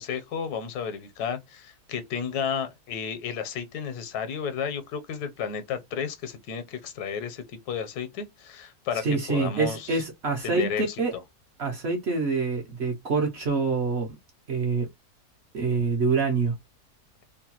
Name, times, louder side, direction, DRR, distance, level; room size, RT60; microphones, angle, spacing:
voice 1, 0.0-9.9 10.4-11.0, left 7 dB, 80° left, 1.2 m, -32 dB
voice 2, 9.0-11.1 11.6-14.2 14.5-14.9 15.5-16.5, right 4 dB, 55° right, 0.7 m, -26 dB
2.9 x 2.2 x 2.8 m
omnidirectional pair, 1.6 m